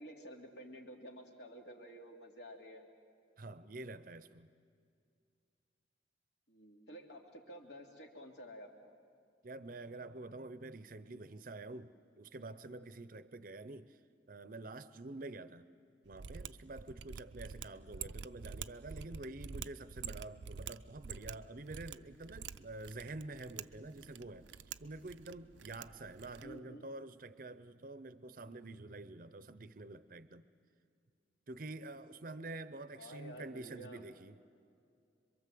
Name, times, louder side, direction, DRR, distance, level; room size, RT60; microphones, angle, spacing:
voice 1, 0.0-2.9 6.5-8.9 17.9-18.1 26.2-26.9 32.9-34.0, equal, 70° left, 2.6 m, -51 dB
voice 2, 3.4-4.5 9.4-14.0 14.3-15.7 16.0-24.5 24.8-30.4 31.5-34.4, right 2 dB, 50° right, 0.7 m, -48 dB
Mechanisms, 16.1-26.6, right 6 dB, 90° right, 0.5 m, -48 dB
26.5 x 23.0 x 7.7 m
head